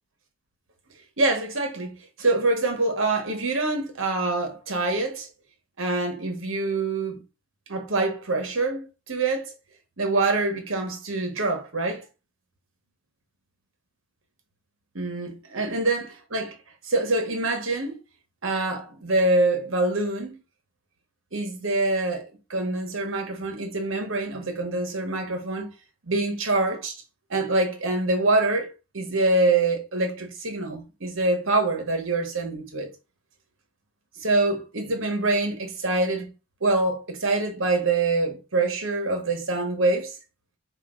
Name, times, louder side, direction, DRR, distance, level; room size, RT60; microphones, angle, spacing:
voice 1, 1.2-5.3 5.8-7.2 7.7-9.5 10.0-12.0 14.9-16.6 16.8-18.0 18.4-20.4 21.3-25.7 26.1-27.0 27.3-32.9 34.2-36.3 36.6-40.1, right 2 dB, 60° right, 1.2 m, -25 dB
5.0 x 2.6 x 3.8 m
head